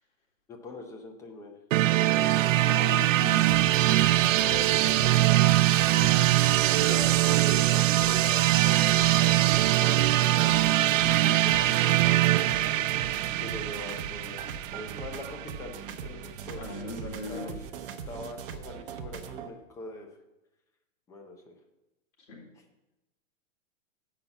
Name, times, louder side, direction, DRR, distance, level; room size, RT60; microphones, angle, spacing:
voice 1, 0.5-1.6 4.3-5.8 6.8-12.7 13.4-17.7 18.1-20.1 21.1-21.6, left 2 dB, 10° left, 3 dB, 0.6 m, -43 dB
sound 1, 1.7-15.4, right 15 dB, 70° right, 0.5 m, -23 dB
voice 2, 2.5-3.8 6.0-7.2 11.0-11.5 16.5-17.6 22.3-22.5, left 2 dB, 60° left, -2 dB, 3.8 m, -40 dB
sound 2, 3.5-19.5, right 7 dB, 45° right, 0.8 m, -40 dB
7.7 x 5.8 x 6.9 m, 0.99 s
hypercardioid pair, 150°, 40 cm